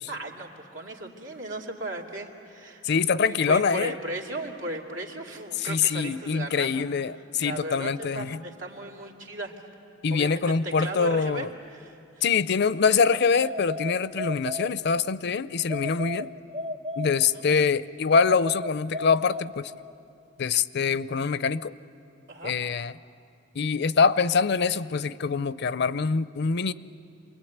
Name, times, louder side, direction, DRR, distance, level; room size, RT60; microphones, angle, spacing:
voice 1, 0.1-2.8 3.3-6.8 7.4-9.6 10.1-12.2 17.3-17.4 22.3-22.5, right 1 dB, 90° right, 1 dB, 2.7 m, -36 dB
voice 2, 2.8-3.9 5.6-8.4 10.0-11.5 12.2-16.3 17.0-19.7 20.4-21.7 22.4-22.9 23.5-26.7, left 5 dB, 60° left, 17 dB, 0.5 m, -24 dB
sound 1, 13.4-15.2 15.7-17.6 18.1-20.0, left 1 dB, 35° right, 0.6 m, -35 dB
28.0 x 21.5 x 9.4 m, 2.7 s
head